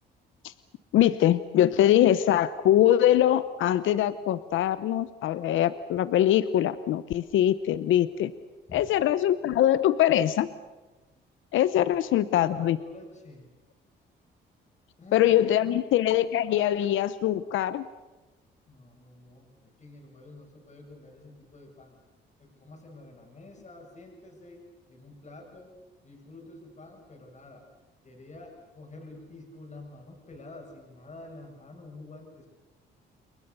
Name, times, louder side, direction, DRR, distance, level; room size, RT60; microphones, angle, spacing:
voice 1, 0.9-8.3 8.7-10.5 11.5-12.8 15.1-17.8, left 12 dB, 80° left, 15 dB, 0.9 m, -23 dB
voice 2, 12.4-13.5 15.0-15.5 18.7-22.0 22.4-25.8 26.0-27.7 28.0-32.5, left 2 dB, 35° left, 1 dB, 7.6 m, -48 dB
29.0 x 22.5 x 7.0 m, 1.2 s
cardioid pair, 90°, 20 cm